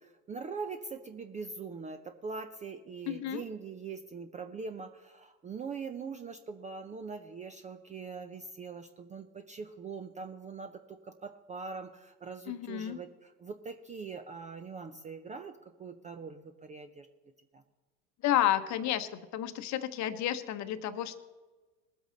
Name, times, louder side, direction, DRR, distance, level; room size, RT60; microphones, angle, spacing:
voice 1, 0.0-17.1 17.5-17.6, right 5 dB, 15° right, 8 dB, 0.5 m, -42 dB
voice 2, 3.1-3.4 12.5-13.0 18.2-21.2, left 12 dB, 35° left, 11 dB, 1.0 m, -31 dB
20.5 x 8.0 x 3.9 m, 1.2 s
hypercardioid pair, 85°, 48 cm